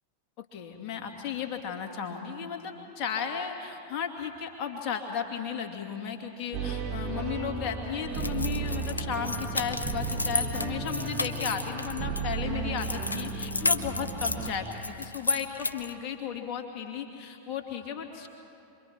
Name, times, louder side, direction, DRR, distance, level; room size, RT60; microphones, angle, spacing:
voice 1, 0.4-18.3, left 7 dB, 40° left, 2 dB, 2.4 m, -35 dB
sound 1, 6.5-14.5, right 5 dB, 30° right, 1.7 m, -34 dB
sound 2, 8.1-12.2 12.8-16.0, left 2 dB, 80° left, 0.7 m, -32 dB
26.5 x 23.0 x 4.6 m, 2.8 s
figure-of-eight pair, 90°, 0 cm